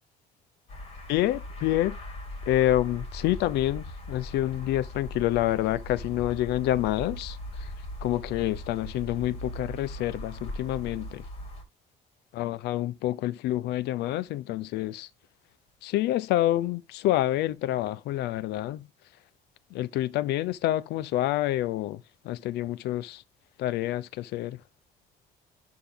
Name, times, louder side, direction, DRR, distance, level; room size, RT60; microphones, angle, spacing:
sound 1, 0.7-11.6, left 1 dB, 35° left, 3.1 m, -39 dB
voice 1, 1.1-2.0 2.5-7.7 8.0-11.2 12.3-15.1 15.8-18.9 19.7-23.2 23.6-24.6, left 14 dB, 80° left, 0.6 m, -28 dB
11.5 x 3.8 x 3.6 m
cardioid pair, 110°, 17 cm